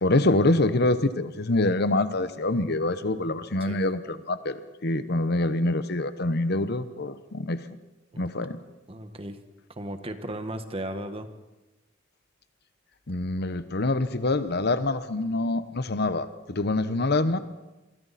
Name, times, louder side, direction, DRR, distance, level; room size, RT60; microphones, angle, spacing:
voice 1, 0.0-7.6 8.2-8.6 13.1-17.4, left 2 dB, 55° left, 12 dB, 1.1 m, -25 dB
voice 2, 8.9-9.4 9.7-11.3, right 1 dB, 30° right, 8 dB, 1.5 m, -35 dB
27.5 x 23.5 x 4.3 m, 1.0 s
head